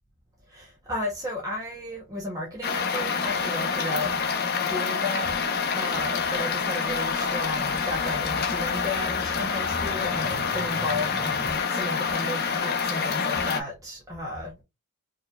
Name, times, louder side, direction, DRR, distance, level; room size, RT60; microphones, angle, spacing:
voice 1, 0.5-4.1 4.7-14.6, left 1 dB, 15° right, 0.8 m, -34 dB
sound 1, 2.6-13.6, left 5 dB, 45° left, 0.7 m, -27 dB
sound 2, 6.6-11.5, left 1 dB, 50° right, 1.5 m, -44 dB
4.5 x 3.2 x 2.3 m
head